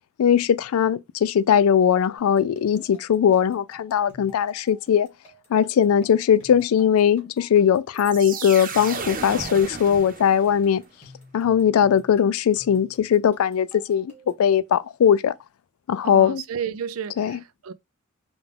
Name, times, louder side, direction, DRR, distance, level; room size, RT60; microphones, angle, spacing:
voice 1, 0.2-5.1 5.5-10.8 11.3-14.1 14.4-15.3 15.9-16.4 17.2-17.4, left 8 dB, 85° left, 0.3 m, -20 dB
sound 1, 2.2-14.5, left 3 dB, 30° left, 2.2 m, -52 dB
sound 2, 8.0-10.8, right 5 dB, 40° right, 0.8 m, -34 dB
voice 2, 16.0-17.7, right 7 dB, 75° right, 0.4 m, -32 dB
4.9 x 2.4 x 3.3 m
head